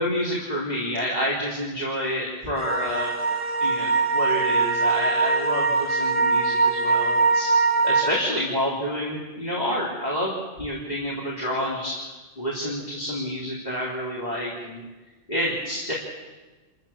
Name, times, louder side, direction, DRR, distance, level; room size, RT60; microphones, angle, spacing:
voice 1, 0.0-3.2 3.6-7.5 7.8-11.9 12.4-14.8 15.3-15.9, equal, 35° left, -6 dB, 3.9 m, -28 dB
sound 1, 2.6-8.1, right 4 dB, 30° right, 1.5 m, -22 dB
28.5 x 15.0 x 7.3 m, 1.2 s
omnidirectional pair, 1.2 m